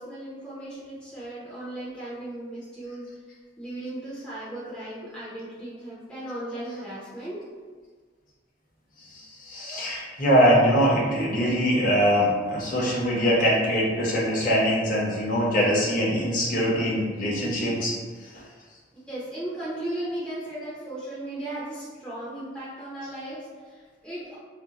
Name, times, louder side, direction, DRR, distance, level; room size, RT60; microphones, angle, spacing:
voice 1, 0.0-3.1 3.6-7.4 19.1-24.4, right 1 dB, 5° left, -10 dB, 0.6 m, -36 dB
voice 2, 9.1-18.0 18.2-18.3, equal, 45° left, -4 dB, 0.7 m, -23 dB
2.5 x 2.1 x 3.8 m, 1.5 s
head